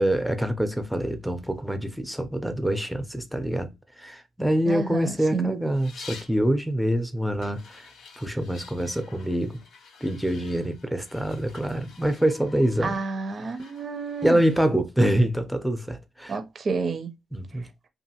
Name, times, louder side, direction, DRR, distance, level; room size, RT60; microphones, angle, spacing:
voice 1, 0.0-7.9 8.2-9.6 10.0-13.0 14.2-16.4 17.3-17.7, right 1 dB, ahead, 0.6 m, -25 dB
voice 2, 4.7-5.5 12.8-14.4 16.3-17.1 17.5-17.7, right 4 dB, 45° right, 0.5 m, -30 dB
sound 1, 5.7-6.4 7.4-14.6, left 5 dB, 75° left, 0.7 m, -49 dB
2.7 x 2.5 x 2.8 m
cardioid pair, 90°, 0 cm